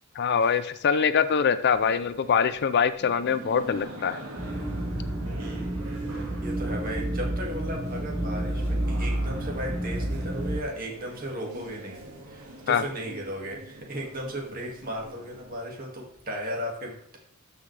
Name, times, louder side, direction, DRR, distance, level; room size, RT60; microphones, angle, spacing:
voice 1, 0.2-4.2 12.7-12.8, left 6 dB, 50° left, 12 dB, 0.4 m, -23 dB
sound 1, 1.7-15.6, right 1 dB, 80° right, 2.0 m, -44 dB
sound 2, 4.4-10.6, right 1 dB, 10° right, 0.9 m, -30 dB
voice 2, 5.4-5.7 6.1-8.6 8.9-17.2, equal, 40° right, 0 dB, 2.0 m, -36 dB
13.0 x 5.6 x 3.3 m, 0.68 s
head